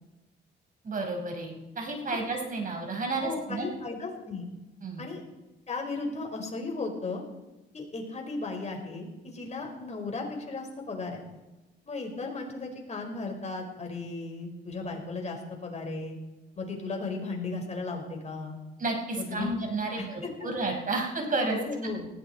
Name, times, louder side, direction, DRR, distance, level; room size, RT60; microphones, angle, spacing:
voice 1, 0.8-3.7 4.8-5.0 18.8-21.6, right 3 dB, 40° right, 2 dB, 5.2 m, -31 dB
voice 2, 3.2-4.5 5.0-5.2 5.7-7.2 7.7-11.2 11.8-16.2 16.6-18.6 19.2-19.5 19.9-20.1 20.4-20.5 21.5-22.1, left 3 dB, 35° left, 2 dB, 5.0 m, -35 dB
19.5 x 16.5 x 4.4 m, 1.1 s
cardioid pair, 90°, 20 cm